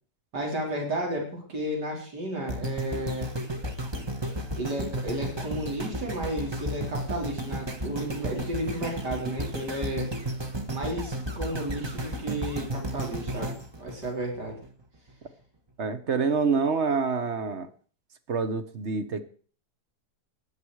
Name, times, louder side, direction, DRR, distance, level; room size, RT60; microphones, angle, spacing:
voice 1, 0.3-3.3 4.5-10.1 10.7-14.6, right 1 dB, 75° right, 0 dB, 4.4 m, -33 dB
sound 1, 2.5-14.7 15.2-15.3, right 1 dB, 20° right, 1.0 m, -33 dB
voice 2, 15.8-17.7 18.3-19.2, right 5 dB, 45° right, 11 dB, 1.3 m, -26 dB
15.0 x 10.5 x 4.8 m, 0.43 s
omnidirectional pair, 1.8 m